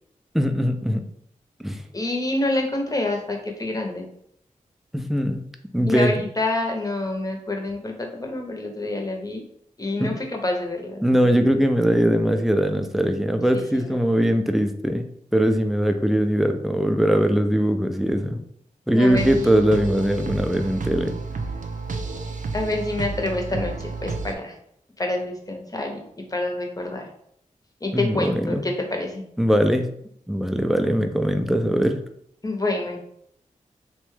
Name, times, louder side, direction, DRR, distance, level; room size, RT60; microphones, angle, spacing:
voice 1, 0.3-1.0 1.6-1.8 4.9-5.4 5.7-6.2 10.0-10.1 11.0-15.1 15.3-18.4 18.9-21.1 27.9-28.6 29.4-29.9 30.3-32.0, equal, ahead, 6 dB, 0.4 m, -21 dB
voice 2, 1.9-4.1 5.9-9.4 9.8-11.0 11.2-11.4 13.7-14.0 18.9-19.5 22.5-24.5 25.0-27.1 27.8-29.2 32.4-33.0, left 2 dB, 25° left, 2 dB, 0.7 m, -27 dB
sound 1, 19.1-24.3, right 3 dB, 70° right, 0.4 m, -31 dB
2.9 x 2.2 x 3.2 m, 0.71 s
cardioid pair, 55°, 14 cm